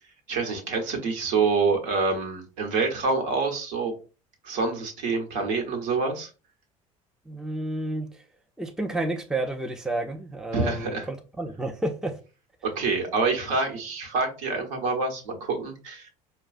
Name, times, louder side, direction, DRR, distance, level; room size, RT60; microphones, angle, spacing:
voice 1, 0.3-3.9 4.4-6.3 10.5-11.1 12.6-16.1, right 4 dB, 70° right, 1.0 m, -26 dB
voice 2, 7.3-8.2 8.6-12.2, right 2 dB, 5° right, 0.4 m, -30 dB
4.7 x 2.2 x 2.4 m
hypercardioid pair, 70°, 18 cm